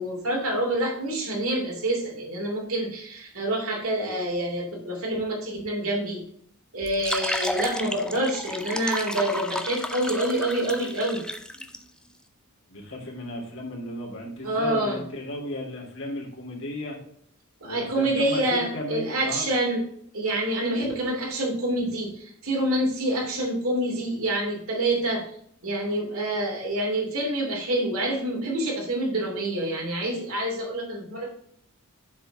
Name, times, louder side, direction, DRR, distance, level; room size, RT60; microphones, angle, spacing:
voice 1, 0.0-6.2 6.7-11.2 14.4-15.0 17.6-19.8 20.1-25.2 25.6-31.3, right 1 dB, 70° right, -1 dB, 2.9 m, -27 dB
sound 1, 6.8-11.8, left 1 dB, 5° left, 0.5 m, -32 dB
voice 2, 12.7-17.0 17.6-19.5, left 1 dB, 60° left, -1 dB, 2.8 m, -35 dB
7.4 x 4.8 x 4.8 m, 0.66 s
head